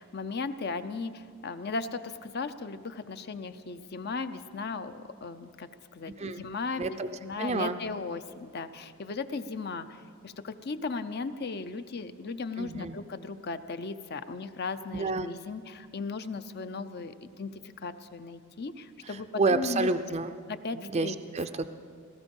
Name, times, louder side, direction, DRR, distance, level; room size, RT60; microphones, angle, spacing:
voice 1, 0.0-4.9 5.2-9.9 10.2-17.5 17.8-19.9 20.5-21.2 21.5-21.6, left 4 dB, 50° left, 11 dB, 0.6 m, -36 dB
voice 2, 6.8-7.1 7.4-7.8 12.6-13.0 14.9-15.3 19.1-20.3 20.8-21.7, right 3 dB, 30° right, 8 dB, 0.4 m, -29 dB
17.0 x 14.5 x 5.4 m, 2.1 s
head